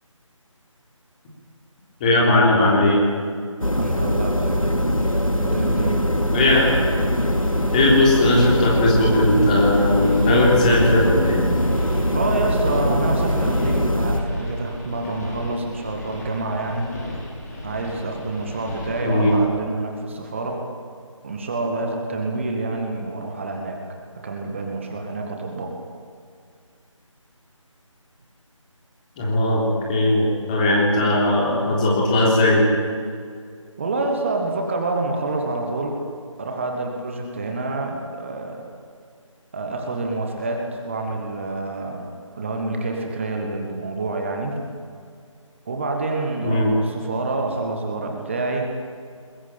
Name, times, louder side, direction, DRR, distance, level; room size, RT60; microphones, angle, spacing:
voice 1, 2.0-3.0 6.3-6.8 7.7-11.4 19.0-19.4 29.2-32.7 46.4-46.8, left 1 dB, 15° left, -3 dB, 3.7 m, -18 dB
sound 1, 3.6-14.2, equal, 90° left, 2.7 m, -22 dB
voice 2, 3.8-4.7 5.4-6.0 12.1-16.9 17.6-20.6 21.2-23.8 24.2-25.8 33.8-36.0 36.4-38.7 39.5-42.0 42.4-44.5 45.7-48.7, right 2 dB, 25° right, 2 dB, 2.0 m, -27 dB
sound 2, 5.0-19.4, left 1 dB, 30° left, 6.5 m, -37 dB
22.0 x 21.0 x 8.9 m, 2.2 s
figure-of-eight pair, 160°, 17 cm